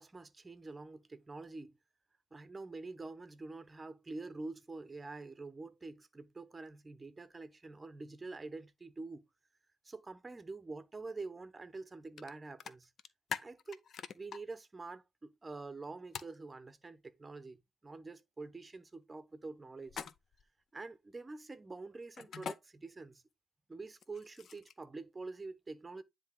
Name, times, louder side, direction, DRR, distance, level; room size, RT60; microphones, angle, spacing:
voice 1, 0.0-1.7 2.3-9.2 9.8-12.9 13.4-13.8 14.1-20.0 20.7-23.2 23.7-26.0, right 3 dB, 25° right, 0.9 m, -46 dB
sound 1, 12.2-12.3 12.6-14.4 16.1-16.4 19.9-20.4 22.2-22.6 23.9-24.8, left 7 dB, 60° left, 0.6 m, -43 dB
9.7 x 3.4 x 3.7 m
cardioid pair, 90°, 0 cm